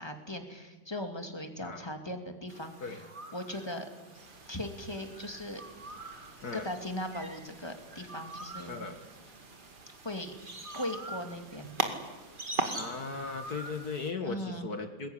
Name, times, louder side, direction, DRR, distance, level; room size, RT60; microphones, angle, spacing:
voice 1, 0.0-3.0 3.3-3.9 4.5-5.6 6.5-8.9 10.0-10.3 10.7-11.8 14.2-14.7, left 1 dB, 10° left, 5 dB, 2.4 m, -38 dB
sound 1, 2.5-14.1, right 2 dB, 25° right, 2.2 m, -41 dB
sound 2, 4.1-14.1, right 4 dB, 55° right, 2.4 m, -57 dB
voice 2, 8.7-9.0 12.7-15.1, left 4 dB, 50° left, 7 dB, 2.1 m, -37 dB
22.0 x 20.5 x 10.0 m, 1.2 s
omnidirectional pair, 2.2 m